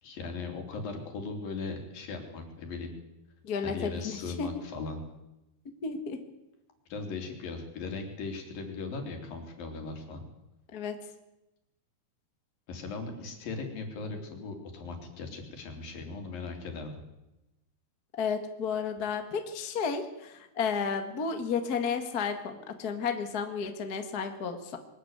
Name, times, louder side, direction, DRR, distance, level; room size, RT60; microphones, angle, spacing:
voice 1, 0.0-2.9 3.6-5.0 6.9-10.2 12.7-16.9, left 4 dB, 60° left, 4 dB, 4.8 m, -38 dB
voice 2, 3.4-4.5 5.8-6.2 10.7-10.9 18.2-24.8, left 6 dB, 45° left, 6 dB, 1.3 m, -32 dB
22.0 x 13.0 x 9.6 m, 0.94 s
omnidirectional pair, 4.6 m